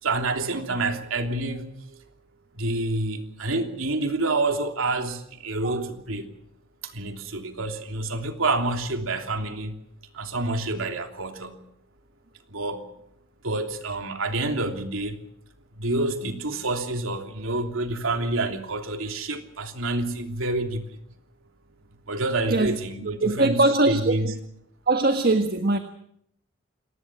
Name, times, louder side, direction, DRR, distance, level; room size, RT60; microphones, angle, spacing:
voice 1, 0.0-2.0 2.5-6.3 6.8-9.8 10.1-11.6 12.5-12.8 13.4-15.2 15.7-21.0 22.1-24.3, right 2 dB, 85° right, 3.1 m, -28 dB
voice 2, 23.2-24.3 24.9-25.8, right 2 dB, 50° right, 1.5 m, -22 dB
28.0 x 19.5 x 6.2 m
head